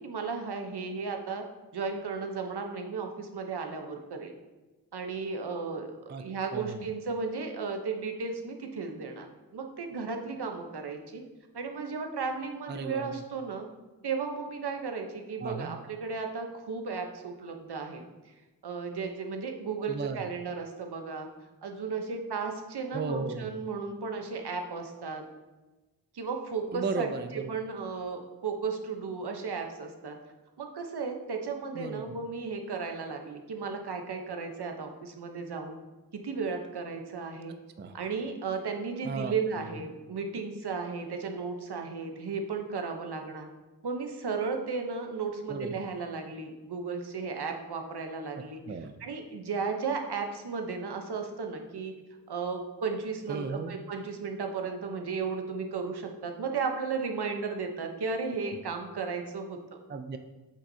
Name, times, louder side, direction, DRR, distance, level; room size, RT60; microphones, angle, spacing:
voice 1, 0.0-1.4 1.7-4.3 4.9-9.3 9.5-11.2 11.5-13.7 14.0-18.1 18.6-21.3 21.6-25.2 26.1-27.1 27.5-30.2 30.6-35.8 36.1-37.5 37.9-43.5 43.8-48.6 49.0-51.9 52.3-59.8, right 4 dB, 70° right, 4 dB, 0.9 m, -34 dB
voice 2, 6.5-6.9 12.7-13.2 15.4-15.8 19.9-20.3 22.9-23.5 26.7-27.6 31.7-32.1 37.8-37.9 39.0-39.7 45.5-45.8 48.3-49.0 53.3-53.8 59.9-60.2, right 4 dB, 30° right, 8 dB, 0.3 m, -35 dB
8.2 x 6.1 x 2.7 m, 1.2 s
wide cardioid pair, 110°, 41 cm